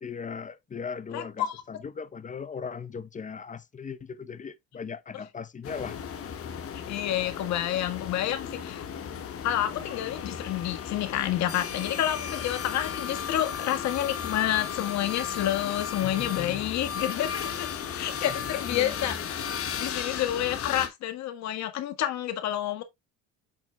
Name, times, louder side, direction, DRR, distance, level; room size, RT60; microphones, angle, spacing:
voice 1, 0.0-6.0 16.0-16.6 18.1-19.2, left 6 dB, 25° left, 0.8 m, -38 dB
voice 2, 1.1-1.5 6.9-8.8 9.4-17.7 17.9-19.1 19.8-22.8, left 12 dB, 70° left, 1.6 m, -29 dB
sound 1, 5.6-20.9, left 8 dB, 50° left, 1.6 m, -35 dB
8.8 x 6.2 x 2.2 m
supercardioid pair, 85°, 29 cm